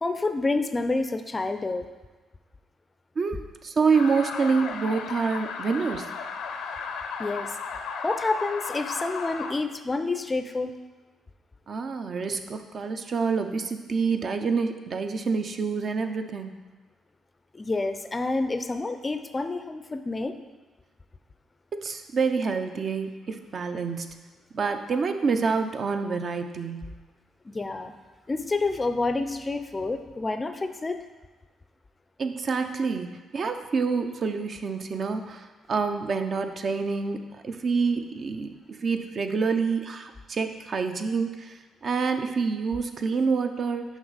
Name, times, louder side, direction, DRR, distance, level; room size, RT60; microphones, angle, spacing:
voice 1, 0.0-1.9 7.2-7.5 8.0-10.7 17.5-20.3 27.5-27.9 28.3-31.0, left 3 dB, 25° left, 8 dB, 0.4 m, -28 dB
voice 2, 3.2-6.1 11.7-16.5 21.7-24.2 24.5-26.9 32.2-43.8, right 5 dB, 50° right, 7 dB, 0.5 m, -27 dB
sound 1, 3.9-9.5, left 5 dB, 80° left, 0.5 m, -35 dB
6.0 x 5.4 x 4.0 m, 1.3 s
cardioid pair, 90°, 0 cm